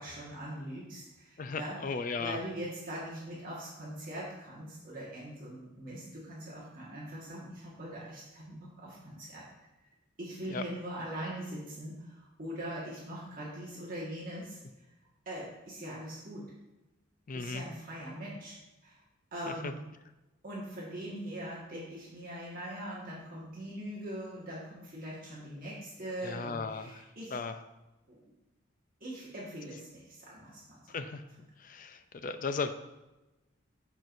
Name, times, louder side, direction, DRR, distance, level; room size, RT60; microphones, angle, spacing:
voice 1, 0.0-1.8 2.2-9.4 10.2-14.6 15.2-16.5 17.3-19.0 19.3-19.8 20.4-27.3 28.1-28.3 29.0-30.9, right 1 dB, 45° right, -6 dB, 1.6 m, -42 dB
voice 2, 1.4-2.4 10.5-10.6 17.3-17.6 19.5-19.7 26.2-27.0 27.3-27.6 30.9-31.2 31.6-32.7, left 4 dB, 40° left, 9 dB, 0.5 m, -36 dB
12.5 x 4.6 x 2.6 m, 1.0 s
head